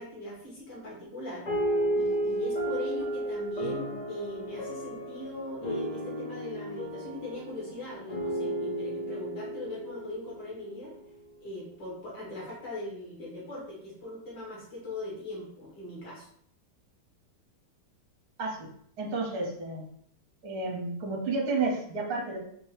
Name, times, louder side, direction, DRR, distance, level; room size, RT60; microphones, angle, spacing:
voice 1, 0.0-1.5 1.9-10.9 11.4-16.3, left 1 dB, 70° left, -6 dB, 2.3 m, -40 dB
sound 1, 1.5-11.2, right 1 dB, 35° left, 0.6 m, -33 dB
voice 2, 19.0-19.8 20.4-22.4, right 3 dB, 65° right, -1 dB, 1.3 m, -31 dB
4.5 x 2.7 x 3.2 m, 0.67 s
omnidirectional pair, 1.9 m